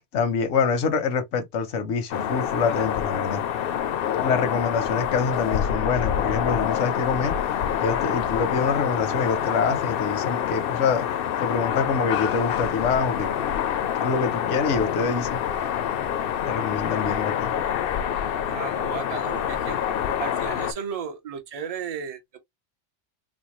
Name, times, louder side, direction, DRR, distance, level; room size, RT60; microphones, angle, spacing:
voice 1, 0.1-3.4 4.2-7.4 7.8-11.1 11.4-13.4 14.0-15.4 16.5-17.5, left 5 dB, 85° left, 1.1 m, -25 dB
sound 1, 2.1-20.7, left 9 dB, 60° left, 0.7 m, -26 dB
voice 2, 18.4-19.8 20.2-22.4, right 7 dB, 35° right, 0.8 m, -34 dB
4.2 x 2.2 x 3.0 m
omnidirectional pair, 1.2 m